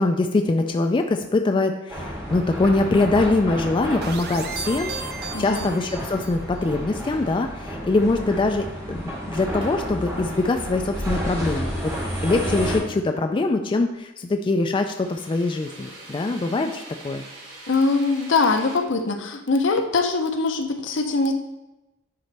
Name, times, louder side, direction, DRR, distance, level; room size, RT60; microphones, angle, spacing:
voice 1, 0.0-4.9 5.4-11.7 12.2-17.2, left 2 dB, 25° left, 5 dB, 0.3 m, -23 dB
sound 1, 1.9-12.8, equal, 15° right, 2.7 m, -31 dB
sound 2, 4.0-6.4, right 6 dB, 55° right, 0.6 m, -35 dB
voice 2, 5.3-5.7 17.7-21.3, left 3 dB, 65° left, 6 dB, 0.7 m, -22 dB
sound 3, 9.6-9.7 14.4-18.8, right 2 dB, 75° right, 2.1 m, -43 dB
10.5 x 4.1 x 3.4 m, 0.99 s
head